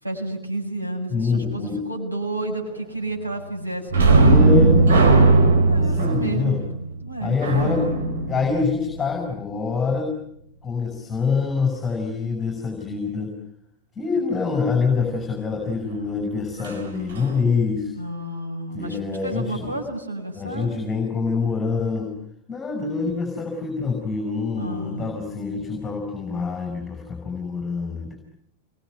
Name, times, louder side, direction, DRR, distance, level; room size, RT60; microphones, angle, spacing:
voice 1, 0.0-4.4 5.7-7.3 17.9-20.8 24.6-25.1, right 1 dB, 85° right, 0 dB, 7.7 m, -31 dB
voice 2, 1.1-1.8 4.2-5.5 5.7-6.6 7.2-7.9 8.3-10.1 10.6-13.3 13.9-17.9 18.7-19.7 20.3-22.1 22.5-28.2, left 4 dB, 15° left, 3 dB, 6.4 m, -25 dB
sound 1, 3.9-9.3 16.6-16.8 17.2-17.3, right 3 dB, 65° right, 3.9 m, -18 dB
28.0 x 23.0 x 9.4 m, 0.73 s
figure-of-eight pair, 90°, 0 cm